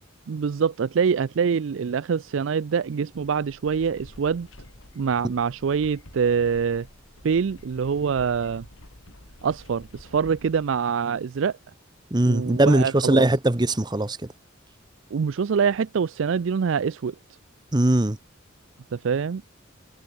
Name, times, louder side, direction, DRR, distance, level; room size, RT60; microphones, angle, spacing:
voice 1, 0.3-4.5 5.0-6.9 7.2-8.6 9.4-11.6 12.3-13.3 15.1-17.1 18.9-19.4, right 6 dB, 70° right, 0.4 m, -25 dB
sound 1, 3.1-11.5, left 1 dB, 85° left, 3.4 m, -49 dB
voice 2, 12.1-14.2 17.7-18.2, right 1 dB, 20° right, 0.9 m, -20 dB
head